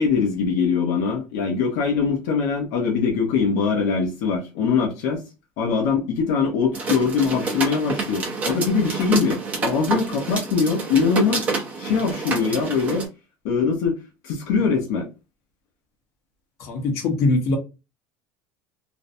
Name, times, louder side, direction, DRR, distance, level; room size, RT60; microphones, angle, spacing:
voice 1, 0.0-5.2 5.6-11.5 11.8-13.1 13.4-14.0 14.2-15.1, left 5 dB, 75° left, 0.6 m, -22 dB
sound 1, 6.7-13.0, right 3 dB, 25° right, 0.6 m, -28 dB
voice 2, 16.7-17.6, left 2 dB, 50° left, 0.9 m, -21 dB
2.5 x 2.1 x 2.6 m
cardioid pair, 160°, 6 cm